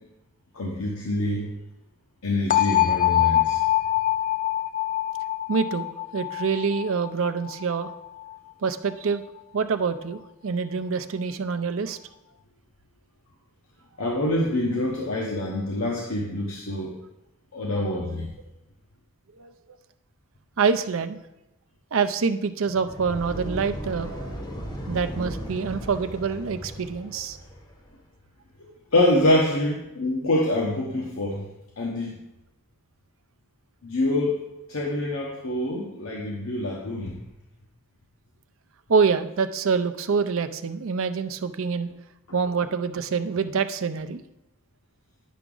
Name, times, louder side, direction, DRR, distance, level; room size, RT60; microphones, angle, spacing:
voice 1, 0.5-1.5 2.2-3.6 14.0-16.9 17.5-18.3 28.6-31.5 31.8-32.2 33.8-34.4 34.7-37.2, left 1 dB, 75° left, -2 dB, 1.1 m, -25 dB
sound 1, 2.5-8.3, left 13 dB, 35° left, 0.3 m, -24 dB
voice 2, 5.5-5.9 6.1-7.9 8.6-9.2 9.5-12.0 19.4-19.5 20.6-21.2 21.9-24.4 24.9-27.4 38.9-41.9 42.3-44.2, right 5 dB, 65° right, 11 dB, 0.5 m, -26 dB
sound 2, 22.7-27.9, equal, 20° left, 1.1 m, -36 dB
10.0 x 6.0 x 3.8 m, 0.93 s
head